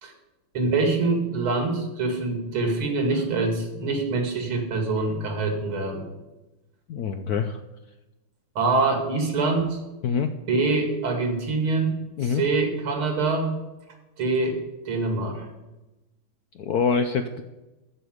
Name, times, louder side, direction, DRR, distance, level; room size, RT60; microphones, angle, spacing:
voice 1, 0.5-6.1 8.6-9.8 10.5-11.9 12.2-13.5 14.2-14.6 14.9-15.5, right 3 dB, 80° right, 3 dB, 3.1 m, -25 dB
voice 2, 6.9-7.5 10.0-10.3 12.2-12.4 16.6-17.4, left 6 dB, 70° left, 8 dB, 0.9 m, -25 dB
14.0 x 5.0 x 7.9 m, 1.0 s
omnidirectional pair, 2.3 m